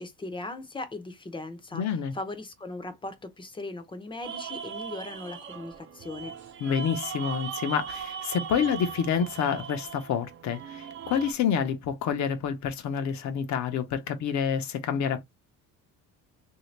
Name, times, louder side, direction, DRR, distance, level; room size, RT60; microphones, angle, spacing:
voice 1, 0.0-6.3, left 2 dB, 15° left, 0.7 m, -38 dB
voice 2, 1.7-2.1 6.6-15.2, left 7 dB, 55° left, 0.9 m, -28 dB
sound 1, 4.2-11.3, right 7 dB, 35° right, 0.7 m, -39 dB
3.3 x 2.8 x 3.2 m
cardioid pair, 145°, 34 cm